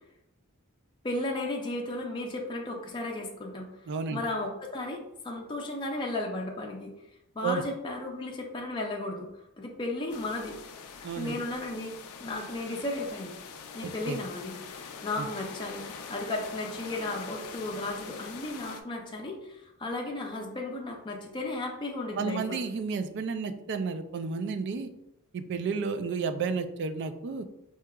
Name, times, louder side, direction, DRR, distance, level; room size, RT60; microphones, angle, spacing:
voice 1, 1.0-3.7 4.1-6.9 7.3-10.6 11.2-11.9 12.2-13.4 13.7-14.6 15.0-22.6, left 2 dB, 20° left, 0 dB, 0.4 m, -34 dB
voice 2, 3.9-4.2 7.4-7.6 11.0-11.4 13.8-14.2 15.2-15.3 22.2-24.9 25.3-27.4, right 5 dB, 50° right, 9 dB, 0.3 m, -32 dB
sound 1, 10.1-18.8, left 6 dB, 90° left, 0.4 m, -44 dB
4.5 x 2.8 x 2.3 m, 0.87 s
head